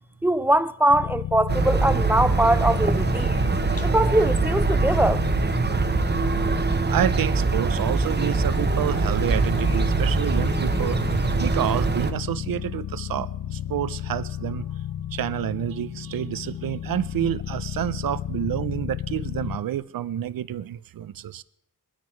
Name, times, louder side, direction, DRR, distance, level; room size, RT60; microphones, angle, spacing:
voice 1, 0.2-3.3 3.8-5.2, right 1 dB, 5° right, 0.4 m, -22 dB
sound 1, 0.9-19.6, left 11 dB, 70° left, 0.7 m, -33 dB
sound 2, 1.5-12.1, right 4 dB, 30° right, 0.9 m, -23 dB
sound 3, 2.5-11.8, left 5 dB, 45° left, 1.2 m, -41 dB
voice 2, 6.9-14.7 15.1-21.4, right 11 dB, 85° right, 0.5 m, -29 dB
22.5 x 9.8 x 4.5 m
wide cardioid pair, 105°, 33 cm